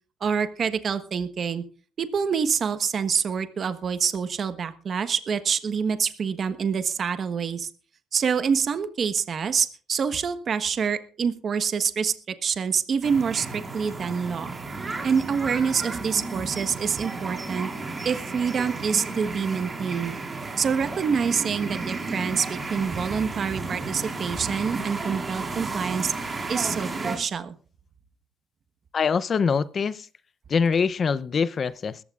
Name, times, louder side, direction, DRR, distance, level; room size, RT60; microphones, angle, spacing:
voice 1, 0.2-1.6 2.0-7.7 8.1-14.5 15.0-17.7 18.0-20.2 20.6-27.5, right 6 dB, 50° right, 1.3 m, -26 dB
sound 1, 13.0-27.2, right 3 dB, 30° right, 4.3 m, -33 dB
voice 2, 28.9-30.1 30.5-32.0, left 5 dB, 45° left, 0.7 m, -24 dB
21.0 x 14.5 x 2.5 m
cardioid pair, 90°, 0 cm